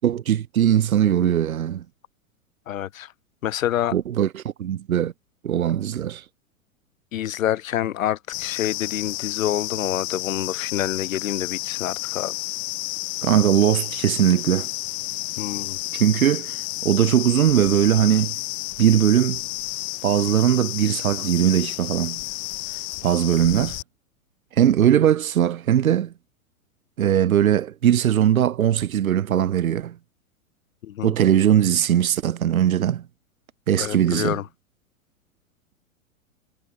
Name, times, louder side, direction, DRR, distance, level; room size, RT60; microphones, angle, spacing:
voice 1, 0.0-1.8 3.9-5.1 5.4-6.2 13.2-14.7 15.9-16.6 16.8-18.4 18.8-19.4 20.0-22.2 23.0-23.8 24.6-26.1 27.0-30.0 31.0-33.0 33.7-34.4, right 10 dB, 85° right, 0.6 m, -20 dB
voice 2, 2.7-3.1 3.4-3.9 7.1-12.3 15.4-15.8 30.8-31.2 33.8-34.5, left 12 dB, 70° left, 0.7 m, -27 dB
sound 1, 8.3-23.8, left 25 dB, 30° left, 0.4 m, -31 dB
figure-of-eight pair, 100°, 41 cm